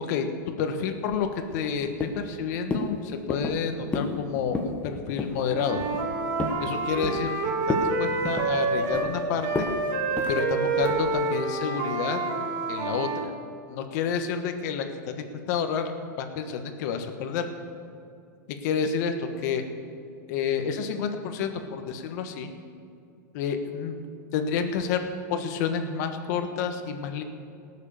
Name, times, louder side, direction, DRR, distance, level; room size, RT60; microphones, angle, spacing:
voice 1, 0.0-5.9 6.6-7.3 7.7-9.7 10.3-12.2 12.7-13.3 13.7-15.9 16.2-17.5 18.5-19.6 20.3-22.5 23.3-24.0 24.3-25.0 25.3-27.2, left 6 dB, 60° left, 6 dB, 1.4 m, -29 dB
sound 1, 1.1-1.7 2.0-2.3 2.7-2.9 3.3-3.6 3.9-4.2 4.4-4.8 5.2-5.4 5.8-6.6 7.0-7.4 7.7-7.9 8.2-9.1 9.5-9.8 10.2-10.4 10.8-11.1, left 3 dB, 15° left, 1.2 m, -31 dB
Wind instrument woodwind instrument, 5.5-9.1 9.4-13.3, right 3 dB, 55° right, 1.8 m, -28 dB
18.5 x 6.7 x 7.0 m, 2.5 s
supercardioid pair, 135°, 10 cm